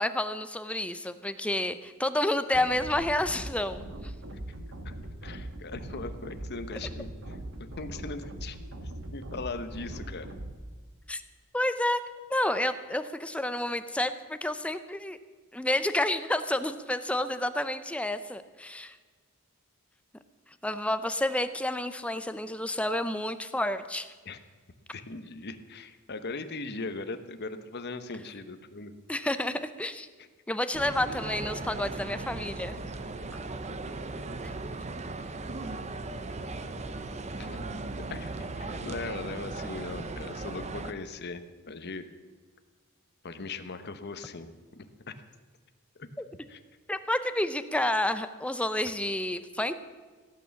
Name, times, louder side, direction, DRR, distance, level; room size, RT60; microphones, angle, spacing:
voice 1, 0.0-4.1 11.1-11.2 11.5-12.0 12.3-15.2 15.5-19.0 20.5-24.1 29.1-30.1 30.5-32.7 34.4-34.5 46.2-46.3 46.9-49.7, left 1 dB, 5° left, 10 dB, 0.6 m, -30 dB
sound 1, 2.5-10.5, right 1 dB, 60° right, 1.5 m, -41 dB
voice 2, 5.2-8.6 9.1-10.3 24.3-24.4 24.9-28.9 37.4-37.6 38.1-42.0 43.2-45.2 46.0-46.1 46.5-46.6, left 3 dB, 50° left, 9 dB, 1.0 m, -39 dB
sound 2, 30.7-40.9, right 2 dB, 30° right, 0.7 m, -37 dB
16.0 x 8.9 x 7.1 m, 1.5 s
head